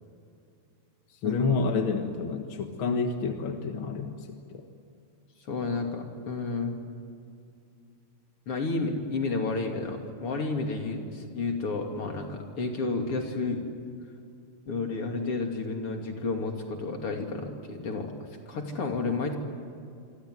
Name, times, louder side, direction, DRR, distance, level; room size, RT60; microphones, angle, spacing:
voice 1, 1.2-4.6, left 4 dB, 65° left, 4 dB, 2.3 m, -29 dB
voice 2, 5.5-6.8 8.5-13.6 14.7-18.1 18.5-19.4, left 3 dB, 85° left, 3 dB, 3.8 m, -31 dB
27.5 x 24.5 x 8.0 m, 2.4 s
omnidirectional pair, 2.4 m